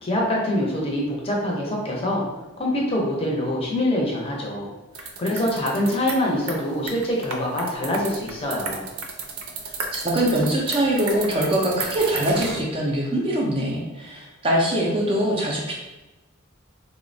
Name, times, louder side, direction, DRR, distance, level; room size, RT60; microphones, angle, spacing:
voice 1, 0.0-2.2 2.6-4.7 5.0-8.9, left 1 dB, 25° left, -3 dB, 0.6 m, -25 dB
sound 1, 4.9-12.6, right 4 dB, 80° right, 0.5 m, -34 dB
voice 2, 9.9-15.7, right 1 dB, 25° right, -3 dB, 0.4 m, -23 dB
3.7 x 2.1 x 2.6 m, 1.1 s
head